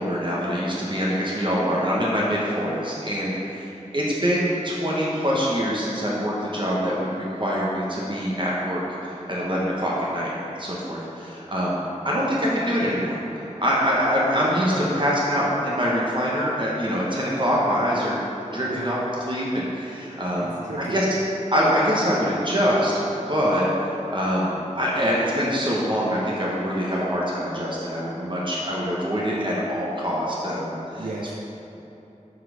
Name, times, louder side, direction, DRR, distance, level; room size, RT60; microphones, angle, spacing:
voice 1, 0.0-10.3 10.6-13.2 13.6-18.2 18.5-19.0 19.2-20.5 20.9-21.1 21.5-23.7 24.1-30.8, equal, 40° right, -6 dB, 1.1 m, -24 dB
voice 2, 14.5-14.9 18.6-18.9 20.4-21.0 31.0-31.3, right 2 dB, 90° right, -5 dB, 0.7 m, -35 dB
7.8 x 4.2 x 4.9 m, 3.0 s
wide cardioid pair, 65°, 13 cm